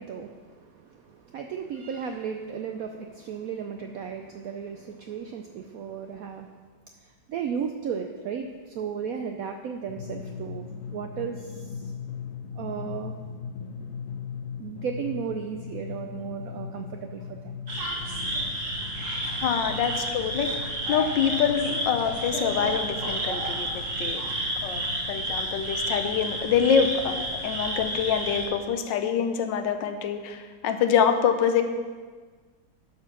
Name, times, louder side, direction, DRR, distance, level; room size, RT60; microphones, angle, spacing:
voice 1, 0.0-6.5 7.0-11.9 12.5-13.2 14.6-17.6 19.7-19.8, right 7 dB, 90° right, 5 dB, 0.7 m, -35 dB
Drum, 9.9-26.1, left 6 dB, 60° left, 0.9 m, -40 dB
sound 1, 17.7-28.5, right 1 dB, 45° right, 1.7 m, -31 dB
voice 2, 19.4-24.2 24.6-31.6, left 7 dB, 75° left, 7 dB, 1.4 m, -26 dB
11.0 x 4.4 x 6.0 m, 1.5 s
omnidirectional pair, 2.1 m